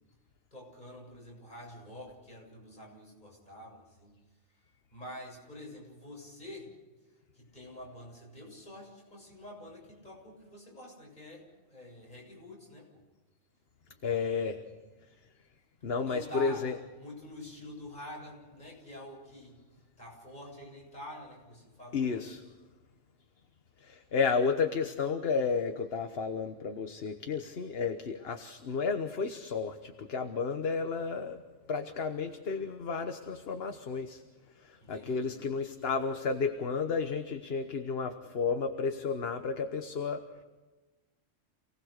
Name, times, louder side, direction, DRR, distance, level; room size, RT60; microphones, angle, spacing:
voice 1, 0.5-4.1 4.9-6.7 7.3-13.0 13.9-14.6 16.0-16.7 17.0-19.6 20.0-22.2 34.8-35.3, left 1 dB, 35° left, -2 dB, 7.5 m, -47 dB
voice 2, 14.0-14.6 15.8-16.7 21.9-22.4 23.8-31.4 31.7-34.2 34.6-40.2, left 5 dB, 55° left, 7 dB, 1.3 m, -32 dB
28.5 x 19.0 x 6.6 m, 1.2 s
omnidirectional pair, 1.3 m